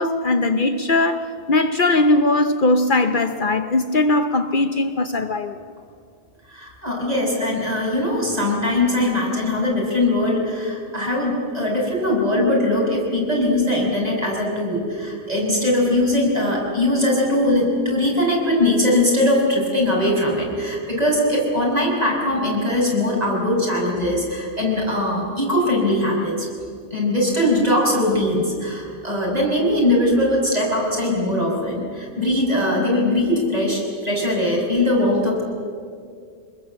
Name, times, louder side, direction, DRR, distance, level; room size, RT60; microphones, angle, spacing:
voice 1, 0.0-5.6, left 2 dB, 50° left, 7 dB, 1.0 m, -19 dB
voice 2, 6.5-26.5 26.9-35.4, left 1 dB, 40° right, -3 dB, 6.0 m, -21 dB
24.5 x 21.0 x 7.5 m, 2.3 s
omnidirectional pair, 1.1 m